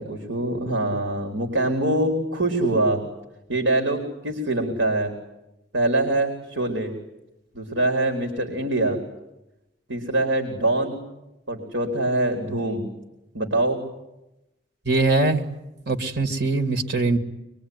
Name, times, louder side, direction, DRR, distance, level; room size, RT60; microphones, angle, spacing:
voice 1, 0.0-3.0 3.5-5.1 5.7-6.9 7.5-9.0 9.9-11.0 11.5-12.9 13.3-13.8, right 2 dB, 90° right, 4.4 m, -24 dB
voice 2, 14.9-15.5 15.9-17.2, right 3 dB, 60° right, 2.5 m, -22 dB
25.5 x 23.5 x 9.7 m
head